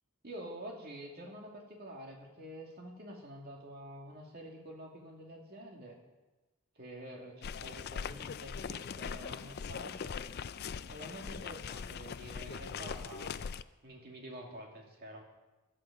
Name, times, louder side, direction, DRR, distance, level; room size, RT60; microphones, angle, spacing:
voice 1, 0.2-6.0 6.8-10.1 10.9-13.4 13.8-15.2, equal, 45° right, 0 dB, 2.5 m, -48 dB
sound 1, 7.4-13.6, left 6 dB, 45° left, 0.4 m, -41 dB
14.5 x 11.5 x 5.1 m, 1.1 s
head